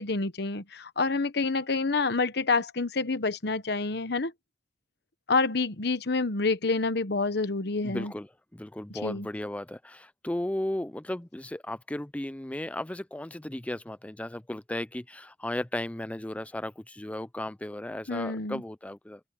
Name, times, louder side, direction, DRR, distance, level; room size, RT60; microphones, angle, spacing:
voice 1, 0.0-4.3 5.3-8.1 9.0-9.3 18.1-18.6, left 3 dB, 65° left, 1.1 m, -28 dB
voice 2, 7.8-19.2, left 1 dB, 10° left, 0.4 m, -35 dB
open air
head